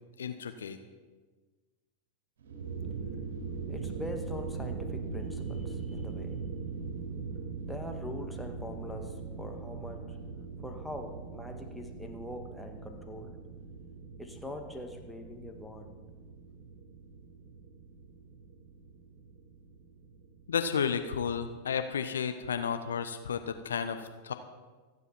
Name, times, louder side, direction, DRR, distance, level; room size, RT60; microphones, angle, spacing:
voice 1, 0.2-0.8 20.5-24.3, left 7 dB, 65° left, 1.0 m, -32 dB
sound 1, 2.4-21.2, right 5 dB, 60° right, 3.5 m, -41 dB
voice 2, 3.7-6.5 7.7-10.3 10.6-13.5 14.2-16.1, left 1 dB, ahead, 2.0 m, -43 dB
27.5 x 9.9 x 4.4 m
figure-of-eight pair, 90°, 0 cm